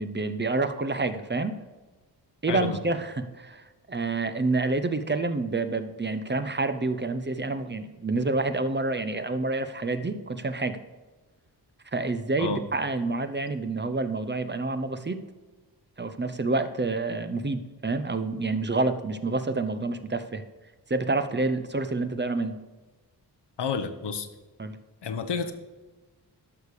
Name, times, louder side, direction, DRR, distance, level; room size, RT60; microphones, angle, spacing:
voice 1, 0.0-1.5 2.4-10.8 11.9-15.2 16.0-20.4 20.9-22.5 24.6-24.7, right 3 dB, 25° right, 10 dB, 0.7 m, -28 dB
voice 2, 2.5-2.8 12.4-12.6 23.6-24.3 25.0-25.5, left 5 dB, 80° left, 8 dB, 1.1 m, -29 dB
11.5 x 6.6 x 4.9 m, 1.2 s
wide cardioid pair, 105°, 41 cm